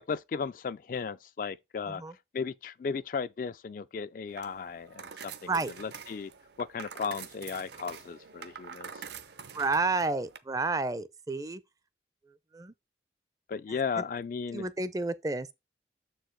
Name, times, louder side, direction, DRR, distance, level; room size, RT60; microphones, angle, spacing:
voice 1, 0.0-2.0 2.3-5.5 5.8-6.3 6.6-9.0 13.5-14.7, left 5 dB, 45° left, 0.3 m, -35 dB
sound 1, 4.3-10.4, right 6 dB, 70° right, 0.8 m, -46 dB
voice 2, 9.5-11.6 12.5-12.7 14.0-14.1 14.5-15.5, right 3 dB, 20° right, 0.4 m, -30 dB
6.9 x 4.7 x 4.5 m
head